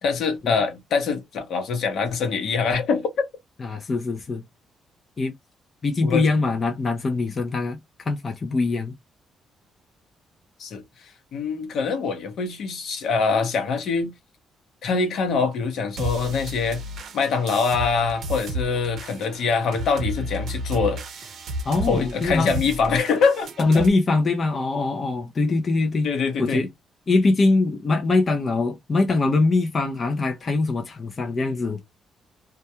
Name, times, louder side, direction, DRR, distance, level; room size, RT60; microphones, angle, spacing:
voice 1, 0.0-3.1 6.0-6.3 10.6-14.1 14.8-16.8 17.1-21.3 21.9-23.9 26.0-26.6, left 5 dB, 70° left, 0.8 m, -24 dB
voice 2, 3.6-4.4 5.2-5.3 5.8-8.9 21.7-22.6 23.6-26.1 26.4-26.7 27.1-31.8, left 3 dB, 40° left, 0.4 m, -22 dB
sound 1, 16.0-23.9, right 1 dB, 65° right, 0.6 m, -33 dB
2.3 x 2.2 x 2.7 m
cardioid pair, 90°, 0 cm